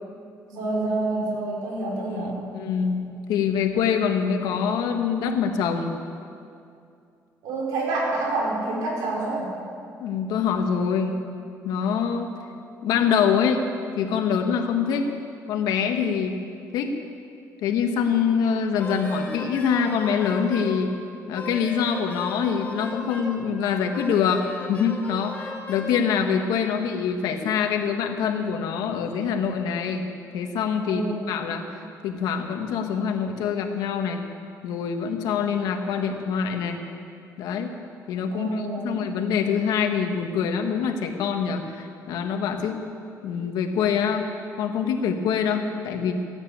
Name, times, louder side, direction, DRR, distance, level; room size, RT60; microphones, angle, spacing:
voice 1, 0.5-2.4 7.4-9.5 30.9-31.3 38.3-39.0, right 2 dB, 90° right, -3 dB, 5.0 m, -27 dB
voice 2, 2.2-6.0 10.0-11.2 11.6-12.3 12.8-13.6 14.0-15.1 15.5-16.4 16.7-16.9 17.6-20.9 21.3-24.4 24.7-30.1 30.3-31.7 32.0-34.2 34.6-36.8 37.4-37.7 38.1-42.8 43.2-44.2 44.6-46.1, left 7 dB, 90° left, 4 dB, 1.6 m, -25 dB
Wind instrument woodwind instrument, 18.8-20.8 21.3-23.4 23.9-25.9, left 1 dB, 20° left, 4.2 m, -36 dB
15.5 x 9.8 x 8.7 m, 2.5 s
cardioid pair, 110°, 6 cm